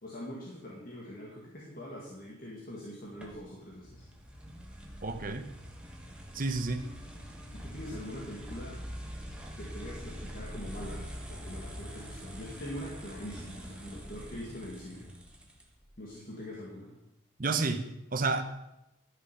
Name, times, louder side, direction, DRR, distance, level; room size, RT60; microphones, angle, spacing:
voice 1, 0.0-4.1 7.5-8.8 9.6-15.1 16.0-17.0, equal, 45° left, -5 dB, 2.0 m, -43 dB
sound 1, 3.2-15.9, equal, 5° right, 1.2 m, -44 dB
voice 2, 5.0-5.5 6.3-6.9 17.4-18.4, right 3 dB, 40° right, 8 dB, 0.9 m, -30 dB
11.5 x 6.6 x 5.7 m, 0.89 s
head